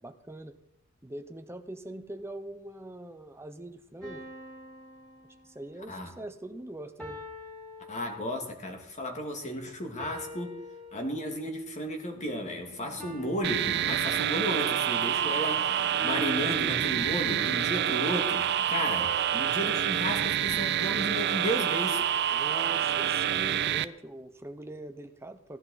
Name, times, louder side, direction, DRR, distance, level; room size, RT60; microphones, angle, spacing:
voice 1, 0.0-0.6 1.0-4.2 5.4-7.2 22.3-25.6, right 1 dB, 10° right, 7 dB, 0.8 m, -42 dB
sound 1, 4.0-5.9 7.0-8.7 10.0-11.6 13.0-14.7 16.0-17.6 19.0-21.3, left 1 dB, 5° left, 3.7 m, -46 dB
voice 2, 7.9-10.6 10.9-22.1, equal, 35° left, 3 dB, 2.0 m, -34 dB
sound 2, 12.1-18.9, equal, 60° left, 2.6 m, -52 dB
sound 3, 13.4-23.8, right 10 dB, 55° right, 0.4 m, -27 dB
16.5 x 11.5 x 4.1 m, 0.84 s
head